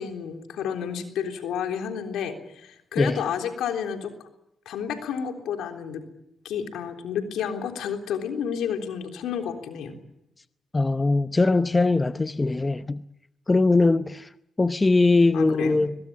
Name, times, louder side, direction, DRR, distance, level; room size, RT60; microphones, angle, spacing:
voice 1, 0.0-4.1 4.7-6.0 6.4-9.9 15.3-15.8, left 8 dB, 80° left, 3.5 m, -30 dB
voice 2, 10.7-13.0 13.5-14.3 14.6-16.0, left 3 dB, 25° left, 0.8 m, -21 dB
22.5 x 21.5 x 8.7 m
supercardioid pair, 55°, 0 cm